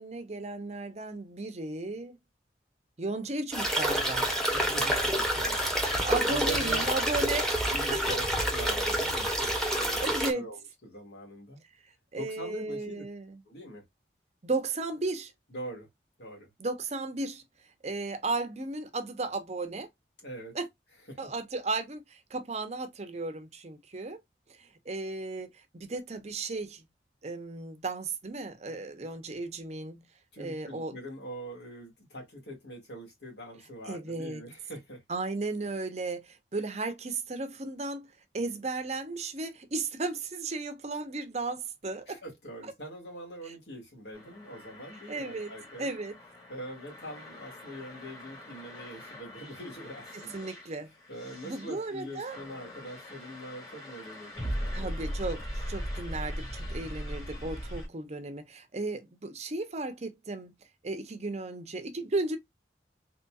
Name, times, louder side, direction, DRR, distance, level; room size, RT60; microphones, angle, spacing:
voice 1, 0.0-2.2 3.0-4.3 6.0-7.5 7.9-8.0 10.0-10.4 12.1-13.4 14.4-15.3 16.6-17.4 17.8-19.9 20.5-20.7 21.2-24.2 24.6-26.8 27.2-30.0 30.4-31.0 33.9-34.4 35.1-38.1 38.3-42.2 45.1-45.5 45.8-46.2 50.1-50.9 51.4-52.4 54.7-60.5 60.8-62.4, right 3 dB, 40° right, 0.7 m, -35 dB
sound 1, 3.5-10.3, equal, 5° left, 0.9 m, -28 dB
voice 2, 4.5-6.9 7.7-11.6 12.1-13.0 13.5-13.8 15.5-15.9 16.2-16.5 20.2-20.6 21.1-21.2 30.3-35.0 42.1-45.9 46.5-50.5 51.1-54.9, right 1 dB, 75° left, 2.0 m, -43 dB
sound 2, 44.1-57.9, equal, 25° left, 1.6 m, -40 dB
4.0 x 3.0 x 2.3 m
head